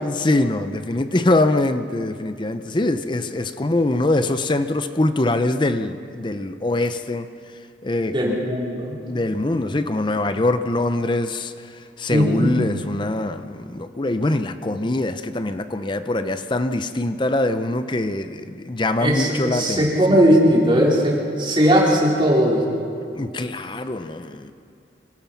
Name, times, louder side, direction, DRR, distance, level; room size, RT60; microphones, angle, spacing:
voice 1, 0.0-7.3 7.8-8.4 9.1-11.5 12.0-20.2 23.2-24.5, left 2 dB, 25° left, 0.6 m, -23 dB
voice 2, 8.1-9.0 12.1-12.5 19.0-22.6, equal, 25° right, 4.1 m, -18 dB
25.5 x 17.0 x 6.0 m
head